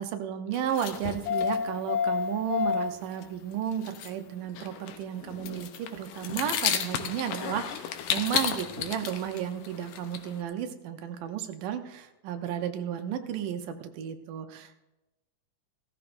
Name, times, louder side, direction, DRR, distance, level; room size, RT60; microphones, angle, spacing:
voice 1, 0.0-14.8, right 9 dB, 85° right, 7 dB, 2.5 m, -33 dB
sound 1, 0.5-2.9 3.2-3.3 3.5-3.6 3.8-4.1 4.4-10.4, left 8 dB, 90° left, 2.5 m, -31 dB
17.0 x 13.5 x 2.6 m, 1.0 s
omnidirectional pair, 3.7 m